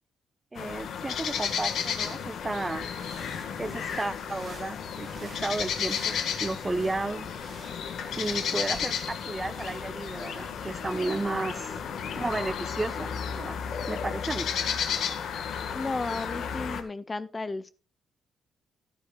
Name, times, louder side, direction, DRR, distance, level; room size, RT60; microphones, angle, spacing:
sound 1, 0.5-16.8, left 7 dB, 70° left, 1.5 m, -33 dB
voice 1, 0.5-2.9 3.6-7.3 8.2-11.8 12.1-13.1 13.4-13.6 13.9-14.5, right 2 dB, 15° right, 14 dB, 0.8 m, -33 dB
sound 2, 2.7-12.6, right 5 dB, 50° right, 2.2 m, -51 dB
voice 2, 15.7-17.7, left 3 dB, 25° left, 15 dB, 0.5 m, -33 dB
12.5 x 11.0 x 2.3 m, 0.34 s
cardioid pair, 115°, 0 cm